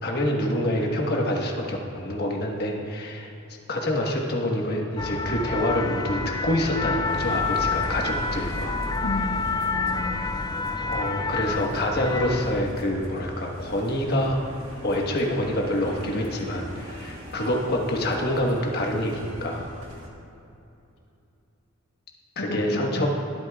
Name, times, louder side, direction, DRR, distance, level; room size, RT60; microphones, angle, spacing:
voice 1, 0.0-3.3 3.7-8.7 10.8-14.4 14.8-19.7 22.4-23.1, left 1 dB, 50° left, 0 dB, 1.3 m, -26 dB
sound 1, 5.0-12.6, left 4 dB, 20° left, 0.3 m, -28 dB
sound 2, 7.1-20.1, right 1 dB, 70° right, 1.6 m, -41 dB
voice 2, 9.0-10.3 22.4-23.1, left 1 dB, 75° left, -1 dB, 1.0 m, -33 dB
21.0 x 8.4 x 2.3 m, 2.8 s
head